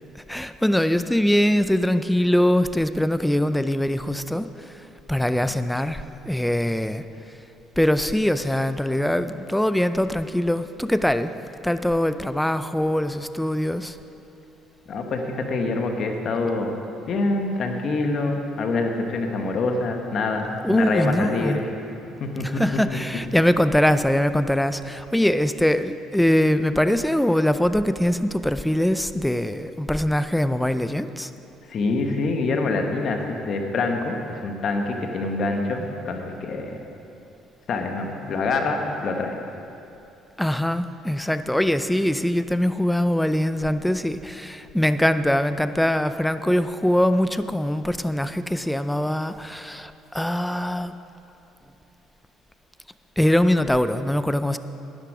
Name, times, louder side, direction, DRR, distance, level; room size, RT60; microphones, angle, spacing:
voice 1, 0.3-7.0 7.8-11.3 11.6-14.0 20.6-21.6 22.4-31.3 40.4-50.9 53.2-54.6, left 1 dB, 5° left, 11 dB, 0.5 m, -22 dB
voice 2, 14.9-16.7 17.1-21.7 22.0-22.6 31.7-36.8 37.7-39.4, left 3 dB, 55° left, 3 dB, 1.4 m, -25 dB
12.0 x 10.5 x 4.9 m, 2.8 s
supercardioid pair, 85°, 0 cm